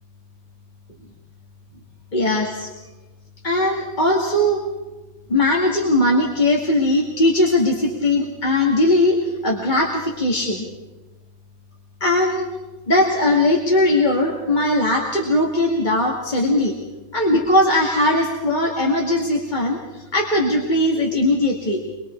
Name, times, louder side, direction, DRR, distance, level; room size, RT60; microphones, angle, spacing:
voice 1, 2.1-2.7 3.4-4.6 5.3-9.2 9.4-10.7 12.0-12.5 12.9-16.7 17.1-21.9, left 1 dB, 40° left, -1 dB, 2.6 m, -19 dB
25.0 x 23.0 x 4.6 m, 1.1 s
omnidirectional pair, 1.2 m